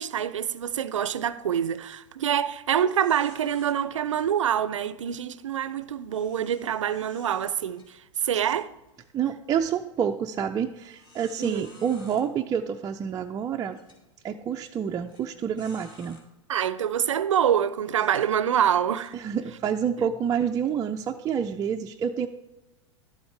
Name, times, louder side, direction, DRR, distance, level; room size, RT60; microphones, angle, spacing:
voice 1, 0.0-8.7 11.4-11.7 16.5-19.2 20.0-20.1, right 9 dB, 80° right, 0.5 m, -26 dB
sound 1, 1.8-2.1 2.4-2.5 2.9-3.7 6.1-8.4 8.9-9.0 9.7-9.8 10.8-12.2 13.1-13.2 13.7-14.0 15.1-15.2 15.6-16.2 16.9-17.1 17.9-19.1, left 2 dB, 30° left, 2.5 m, -53 dB
voice 2, 9.1-13.8 14.2-16.2 19.1-22.3, right 8 dB, 25° right, 0.4 m, -28 dB
12.0 x 7.9 x 3.3 m
hypercardioid pair, 100°, 16 cm